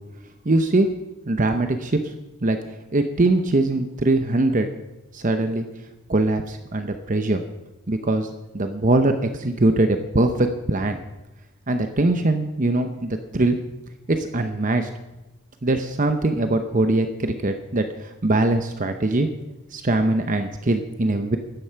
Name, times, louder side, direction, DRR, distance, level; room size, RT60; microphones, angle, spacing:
voice 1, 0.4-0.9 1.3-2.0 2.4-2.6 2.9-4.7 5.1-5.7 6.1-7.4 7.9-8.3 8.5-11.0 11.7-13.6 14.1-14.9 15.6-19.3 19.7-21.4, right 2 dB, 40° right, 7 dB, 0.8 m, -22 dB
15.0 x 11.0 x 5.8 m, 1.0 s
head